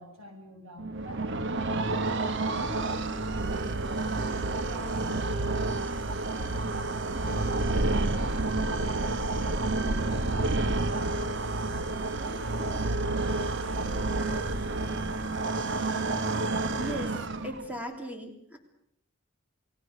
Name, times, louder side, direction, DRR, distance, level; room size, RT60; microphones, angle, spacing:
voice 1, 0.0-11.6 12.2-15.5, equal, 85° right, 3 dB, 7.7 m, -47 dB
sound 1, 0.8-17.8, right 2 dB, 60° right, 1.1 m, -29 dB
voice 2, 16.8-17.2 17.4-18.6, equal, 5° right, 4 dB, 3.0 m, -37 dB
29.0 x 19.0 x 6.5 m, 0.73 s
head